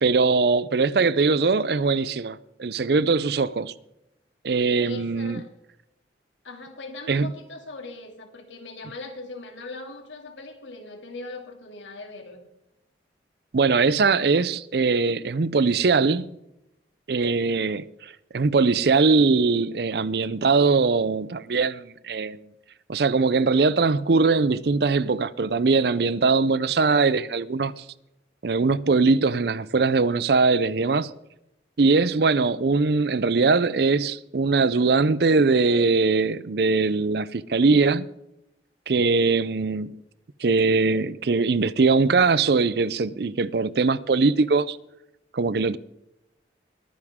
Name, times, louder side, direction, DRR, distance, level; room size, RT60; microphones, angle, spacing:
voice 1, 0.0-3.7 4.4-5.4 7.1-7.3 13.5-16.3 17.1-22.4 22.9-27.8 28.4-31.1 31.8-38.1 38.9-40.0 40.4-44.8 45.3-45.8, right 4 dB, 60° right, 0.5 m, -21 dB
voice 2, 4.8-5.5 6.4-12.4, left 2 dB, 90° left, 2.6 m, -40 dB
22.0 x 9.7 x 3.6 m
head